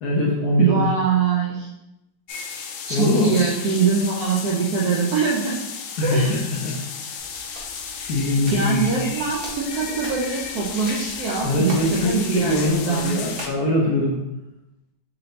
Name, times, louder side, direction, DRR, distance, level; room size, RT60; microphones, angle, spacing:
voice 1, 0.0-0.9 2.9-3.3 6.0-6.8 8.1-8.9 11.4-14.2, left 1 dB, 65° left, -3 dB, 1.1 m, -22 dB
voice 2, 0.6-1.7 2.9-5.6 6.0-6.4 8.5-13.2, right 5 dB, 70° right, -3 dB, 0.9 m, -23 dB
sound 1, 2.3-13.5, left 6 dB, 90° left, 1.4 m, -34 dB
Hands, 7.2-13.7, equal, 35° right, 1.0 m, -42 dB
4.3 x 2.7 x 3.9 m, 0.90 s
omnidirectional pair, 2.2 m